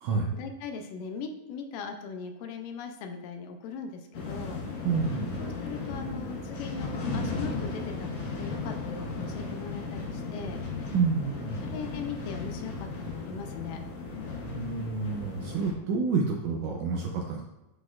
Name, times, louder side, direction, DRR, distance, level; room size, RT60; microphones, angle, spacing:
voice 1, 0.3-4.6 5.4-10.6 11.6-13.8, left 5 dB, 80° left, 6 dB, 2.2 m, -40 dB
sound 1, 4.1-15.7, left 3 dB, 60° left, 2.7 m, -36 dB
voice 2, 4.8-5.4 10.9-11.6 14.5-17.4, right 4 dB, 80° right, 1 dB, 1.8 m, -29 dB
10.5 x 4.1 x 2.4 m, 0.98 s
omnidirectional pair, 4.0 m